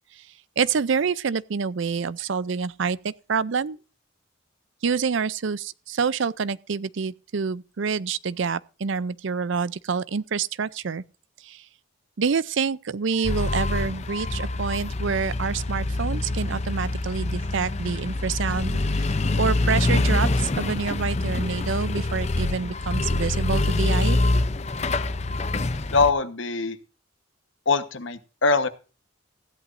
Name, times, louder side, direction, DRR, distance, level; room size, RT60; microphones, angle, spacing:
voice 1, 0.6-3.8 4.8-11.0 11.4-11.6 12.2-19.1 19.4-24.2, right 5 dB, 65° right, 0.5 m, -27 dB
sound 1, 13.2-26.1, left 2 dB, 30° left, 0.6 m, -25 dB
voice 2, 25.9-26.8 27.7-28.7, left 4 dB, 65° left, 1.2 m, -22 dB
15.5 x 11.0 x 2.6 m
head